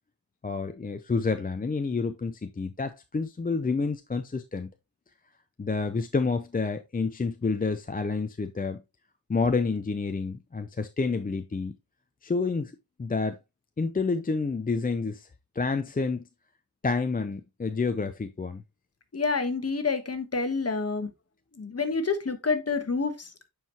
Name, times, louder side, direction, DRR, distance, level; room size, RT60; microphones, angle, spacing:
voice 1, 0.4-4.7 5.6-8.8 9.3-11.7 12.2-12.7 13.0-13.4 13.8-15.3 15.5-16.3 16.8-18.6, left 4 dB, 25° left, 0.5 m, -29 dB
voice 2, 19.1-21.1 21.5-23.5, left 4 dB, 40° left, 1.2 m, -28 dB
8.9 x 4.8 x 2.9 m
wide cardioid pair, 85°, 39 cm